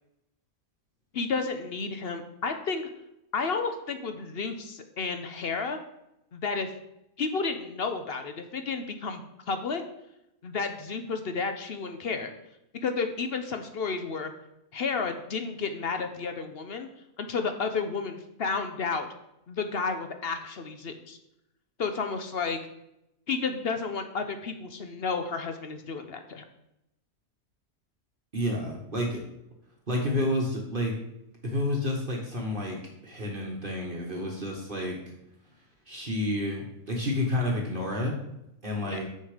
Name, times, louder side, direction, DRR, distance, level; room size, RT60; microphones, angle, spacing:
voice 1, 1.1-2.9 3.3-5.8 6.3-6.7 7.2-9.2 9.5-9.8 10.4-12.3 12.8-14.3 14.7-16.9 17.2-19.1 19.5-21.2 21.8-22.6 23.3-26.4 38.8-39.0, left 4 dB, 50° left, 7 dB, 0.8 m, -31 dB
voice 2, 28.3-29.2 29.9-30.9 31.4-32.8 33.0-35.0 35.9-38.2 38.6-39.0, left 1 dB, 40° right, -1 dB, 1.4 m, -30 dB
6.9 x 6.5 x 5.0 m, 0.85 s
omnidirectional pair, 1.5 m